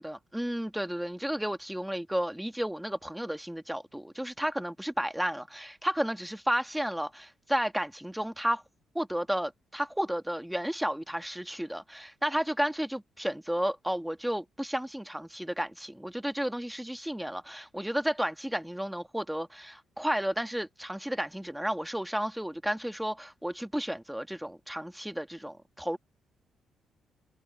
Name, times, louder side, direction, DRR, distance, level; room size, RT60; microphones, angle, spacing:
voice 1, 0.0-8.6 8.9-26.0, equal, 5° right, 1.8 m, -32 dB
cardioid pair, 90°, 0 cm